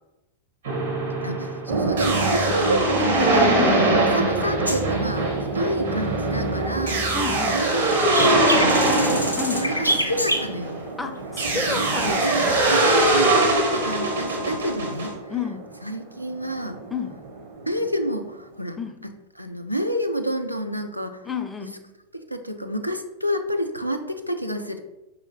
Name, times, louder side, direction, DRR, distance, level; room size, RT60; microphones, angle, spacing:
sound 1, 0.6-10.8 11.4-15.1, right 2 dB, 65° right, 1.1 m, -22 dB
voice 1, 1.2-3.5 4.0-7.1 7.5-10.8 12.0-15.1 15.8-16.8 17.7-18.8 19.4-21.2 22.1-24.8, equal, 90° right, 5 dB, 0.3 m, -29 dB
sound 2, 1.7-18.5, right 3 dB, 45° right, 0.7 m, -30 dB
voice 2, 3.6-4.1 7.1-7.6 9.4-9.7 11.0-12.7 15.3-15.7 16.9-17.2 18.8-19.0 21.2-21.9, left 5 dB, 10° left, 7 dB, 0.4 m, -31 dB
sound 3, 4.7-6.9 7.2-10.9 11.5-11.7, equal, 90° left, 0.4 m, -28 dB
4.8 x 2.7 x 2.8 m, 0.97 s
figure-of-eight pair, 90°, 0 cm